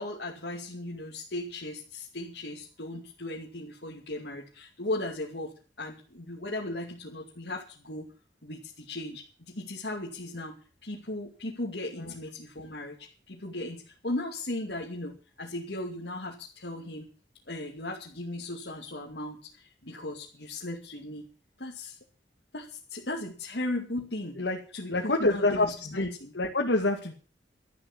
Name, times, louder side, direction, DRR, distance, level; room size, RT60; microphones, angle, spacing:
voice 1, 0.0-8.1 8.4-10.6 10.8-17.1 17.5-21.3 21.6-22.0 22.5-24.4 24.7-26.3, left 1 dB, 65° left, -2 dB, 2.5 m, -37 dB
voice 2, 24.9-26.1 26.3-27.1, left 2 dB, 85° left, 0 dB, 2.4 m, -27 dB
12.5 x 12.5 x 7.2 m, 0.39 s
head